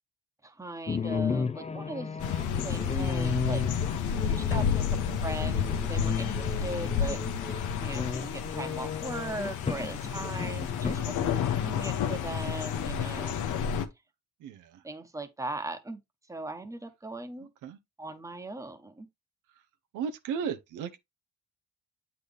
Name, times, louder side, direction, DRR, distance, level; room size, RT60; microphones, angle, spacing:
voice 1, 0.4-2.2 2.6-3.6 4.2-13.4 14.8-16.0 16.3-17.5 18.0-19.1, right 2 dB, 10° right, 1.2 m, -39 dB
sound 1, 0.9-10.9, left 5 dB, 20° left, 0.6 m, -34 dB
sound 2, 2.2-13.9, left 7 dB, 75° left, 1.1 m, -31 dB
sound 3, 4.5-6.2, left 7 dB, 45° left, 1.0 m, -40 dB
voice 2, 14.4-14.8 17.4-17.8 19.9-21.0, right 7 dB, 85° right, 0.9 m, -35 dB
8.3 x 4.1 x 3.5 m
cardioid pair, 90°, 30 cm